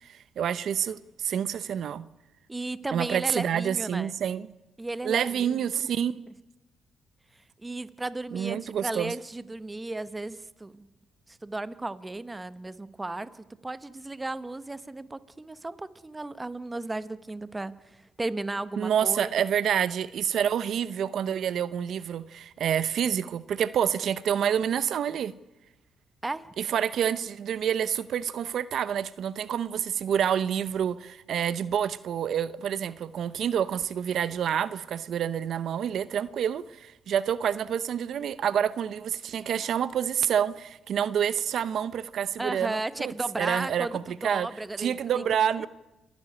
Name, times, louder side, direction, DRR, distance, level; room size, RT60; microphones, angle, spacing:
voice 1, 0.0-2.0 2.9-4.5 5.0-6.1 8.3-9.1 18.8-25.3 26.6-43.1 43.4-44.5 44.8-45.7, right 9 dB, 65° right, 16 dB, 0.7 m, -28 dB
voice 2, 2.5-4.1 4.8-5.8 7.6-10.9 11.3-19.5 26.2-26.5 42.4-45.2, right 2 dB, 15° right, 14 dB, 1.0 m, -35 dB
28.0 x 11.5 x 9.8 m, 1.0 s
cardioid pair, 90°, 0 cm